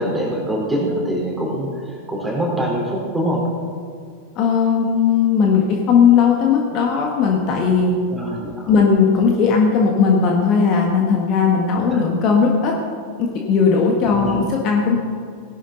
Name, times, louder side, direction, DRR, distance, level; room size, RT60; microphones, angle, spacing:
voice 1, 0.0-3.5 8.1-8.7 11.9-12.0 14.1-14.5, equal, 5° right, -2 dB, 3.9 m, -24 dB
voice 2, 4.3-8.0 8.7-12.7 13.2-15.0, left 6 dB, 35° left, 0 dB, 1.6 m, -17 dB
17.5 x 11.5 x 4.0 m, 2.2 s
figure-of-eight pair, 90°, 0 cm